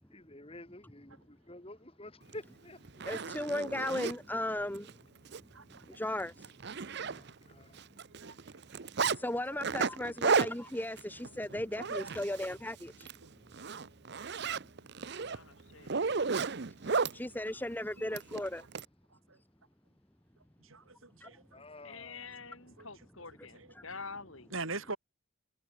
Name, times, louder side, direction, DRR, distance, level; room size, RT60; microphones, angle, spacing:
voice 1, 0.1-2.8 7.0-7.8 21.5-22.3, left 1 dB, 25° left, 3.2 m, -50 dB
Zipper (clothing), 2.3-2.4 2.8-4.2 4.7-4.9 5.2-5.4 5.7-5.8 6.2-7.5 7.8-9.2 9.6-12.5 12.9-13.2 13.5-17.2 18.1-18.8, right 5 dB, 50° right, 0.7 m, -33 dB
voice 2, 3.0-5.0 5.8-6.5 9.2-13.1 16.4-16.5 16.8-18.6 21.2-21.3 23.7-23.8, left 1 dB, 10° left, 1.0 m, -36 dB
voice 3, 5.5-6.0 6.8-7.0 8.2-8.6 10.3-10.5 12.0-12.1 13.2-13.3 19.3-19.4 20.6-21.4 22.8-22.9 23.5-23.7 24.5-25.0, right 3 dB, 70° right, 4.8 m, -42 dB
voice 4, 15.2-15.9 21.8-24.5, left 4 dB, 70° left, 5.6 m, -47 dB
head